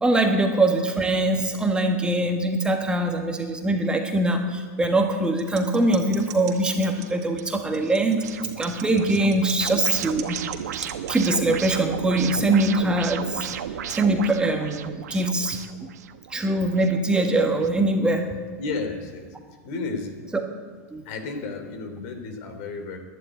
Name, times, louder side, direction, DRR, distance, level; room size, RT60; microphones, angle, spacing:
voice 1, 0.0-8.2 8.6-10.4 11.1-13.5 13.9-15.9 16.3-18.2 20.9-21.0, right 2 dB, 10° right, 3 dB, 1.5 m, -22 dB
sound 1, 5.4-11.3, right 13 dB, 50° right, 2.9 m, -37 dB
sound 2, 6.2-17.7, right 9 dB, 80° right, 1.0 m, -35 dB
voice 2, 18.6-19.3 19.6-20.1 21.0-23.0, left 3 dB, 55° left, 5 dB, 3.3 m, -32 dB
11.5 x 11.0 x 9.3 m, 1.5 s
hypercardioid pair, 125°, 9 cm